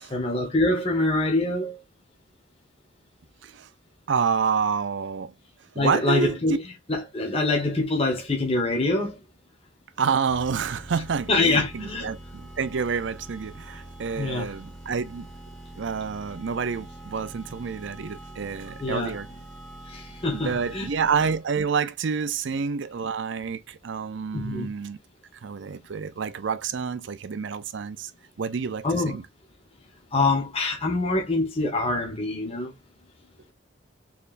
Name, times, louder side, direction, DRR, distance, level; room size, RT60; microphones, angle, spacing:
voice 1, 0.0-1.8 5.8-6.6 6.9-9.2 11.3-12.1 14.2-14.5 18.8-19.2 19.9-20.9 24.3-24.7 28.8-29.2 30.1-32.7, left 2 dB, 30° left, 1.2 m, -25 dB
voice 2, 4.1-5.3 5.8-6.6 10.0-15.3 15.8-19.3 20.3-25.0 25.4-28.1 28.4-29.2, right 6 dB, 65° right, 0.5 m, -28 dB
sound 1, 10.3-21.6, right 1 dB, ahead, 1.8 m, -44 dB
4.4 x 3.3 x 2.5 m
head